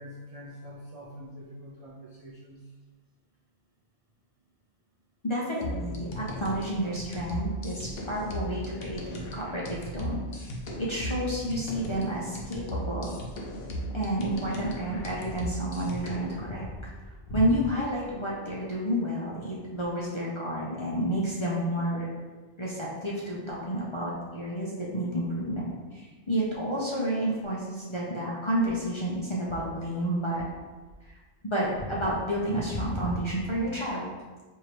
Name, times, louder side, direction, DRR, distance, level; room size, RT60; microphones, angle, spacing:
voice 1, 0.0-2.6, equal, 60° right, -3 dB, 0.3 m, -45 dB
voice 2, 5.2-10.5 10.8-13.2 13.9-16.7 17.3-22.1 22.6-30.4 31.0-31.1 31.4-34.1, right 1 dB, 35° left, -5 dB, 0.5 m, -30 dB
sound 1, 5.6-16.4, equal, 60° left, 0.8 m, -37 dB
4.5 x 2.7 x 3.1 m, 1.3 s
omnidirectional pair, 1.2 m